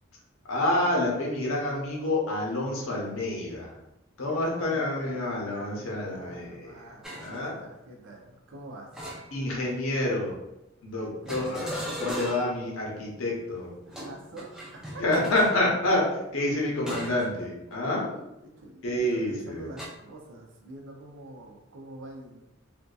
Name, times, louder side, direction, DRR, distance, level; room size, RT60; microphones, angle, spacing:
voice 1, 0.4-3.8 4.2-6.8 7.2-7.5 9.3-10.4 10.8-13.7 15.0-18.1 18.8-19.7, left 1 dB, 90° left, -2 dB, 0.7 m, -28 dB
voice 2, 4.3-5.0 5.7-8.9 11.1-11.6 13.9-15.0 18.0-22.4, right 2 dB, 65° right, 0 dB, 0.5 m, -46 dB
sound 1, 7.0-7.4 8.9-9.7 11.3-12.6 13.9-15.6 16.9-17.3 17.7-17.9 19.8-19.9, equal, 5° right, 0.3 m, -37 dB
2.6 x 2.2 x 2.3 m, 0.90 s
head